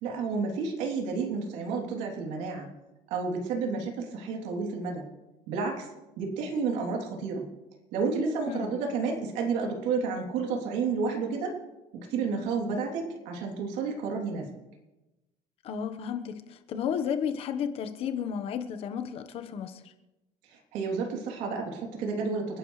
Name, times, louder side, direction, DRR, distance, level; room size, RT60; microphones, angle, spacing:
voice 1, 0.0-2.7 3.1-5.1 5.5-5.9 6.2-7.5 7.9-11.6 12.1-14.5 20.5-22.6, right 4 dB, 85° right, 3.3 m, -31 dB
voice 2, 15.6-19.8, left 7 dB, 55° left, 1.2 m, -33 dB
29.0 x 10.5 x 3.3 m
cardioid pair, 145°, 12 cm